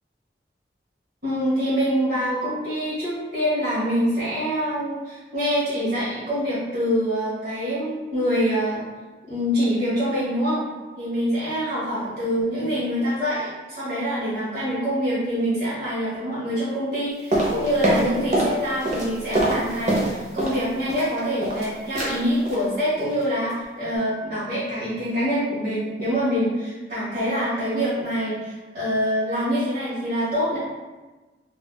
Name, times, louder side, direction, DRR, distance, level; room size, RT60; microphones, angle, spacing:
voice 1, 1.2-8.8 9.3-10.6 11.0-30.6, equal, 55° right, -12 dB, 1.0 m, -25 dB
sound 1, 17.3-18.6 18.8-20.6 20.9-21.7 21.9-22.2 22.5-22.7 23.0-23.2 23.5-23.6, right 1 dB, 40° right, 0.7 m, -24 dB
3.7 x 2.4 x 2.2 m, 1.2 s
head